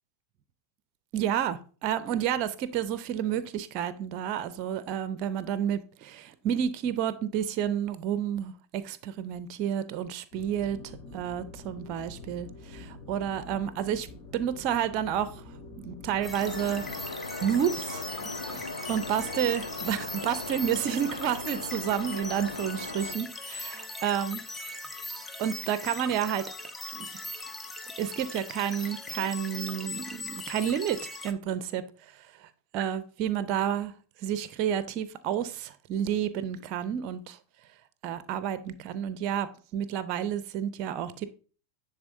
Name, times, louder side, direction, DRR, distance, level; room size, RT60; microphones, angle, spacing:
voice 1, 1.1-14.1 14.3-15.4 15.8-16.8 17.4-18.1 18.9-24.4 25.4-26.5 26.9-27.1 28.0-31.8 32.4-33.9 34.2-37.4 38.0-41.2, right 9 dB, 40° right, 0.5 m, -30 dB
sound 1, 10.3-17.0, left 2 dB, 35° left, 1.2 m, -46 dB
sound 2, 16.2-31.3, left 2 dB, 10° left, 0.5 m, -40 dB
sound 3, 16.4-23.1, left 3 dB, 75° left, 1.0 m, -38 dB
10.0 x 3.6 x 2.7 m
figure-of-eight pair, 90°, 0 cm